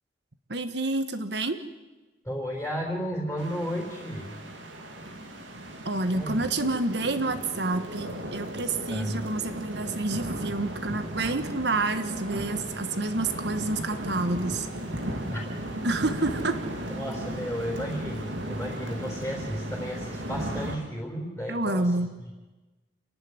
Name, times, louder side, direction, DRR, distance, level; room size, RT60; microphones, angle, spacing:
voice 1, 0.5-1.6 5.8-14.7 15.8-16.5 21.5-22.1, right 2 dB, 65° right, 10 dB, 1.3 m, -28 dB
voice 2, 2.2-4.4 6.1-6.3 8.9-9.2 15.3-15.4 16.9-21.9, equal, 10° left, -2 dB, 4.0 m, -33 dB
sound 1, 3.4-20.8, right 1 dB, 80° right, 2.7 m, -36 dB
27.5 x 11.5 x 9.6 m, 1.2 s
head